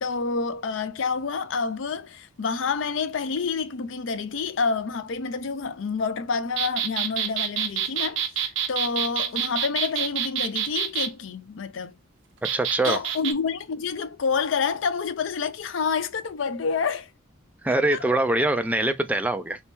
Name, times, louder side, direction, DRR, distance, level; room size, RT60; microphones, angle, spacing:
voice 1, 0.0-11.9 12.8-17.1 17.7-18.0, left 5 dB, 70° left, 0.5 m, -28 dB
sound 1, 6.6-11.1 12.4-13.3, right 9 dB, 70° right, 0.6 m, -27 dB
voice 2, 12.5-13.0 17.6-19.6, right 2 dB, 5° right, 0.4 m, -23 dB
3.1 x 2.8 x 3.4 m
head